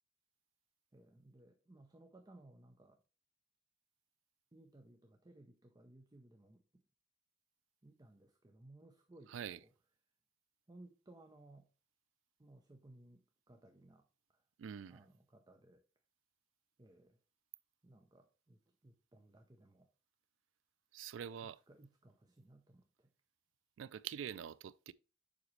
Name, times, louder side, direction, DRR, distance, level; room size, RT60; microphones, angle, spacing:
voice 1, 0.9-3.0 4.5-6.8 7.8-9.7 10.7-11.7 12.4-14.1 14.3-14.4 14.9-15.8 16.8-17.2 17.8-19.9 21.4-23.1, right 2 dB, 20° right, 0.6 m, -61 dB
voice 2, 9.3-9.6 14.6-15.0 20.9-21.6 23.8-24.9, right 8 dB, 75° right, 0.3 m, -45 dB
7.3 x 5.1 x 3.2 m
head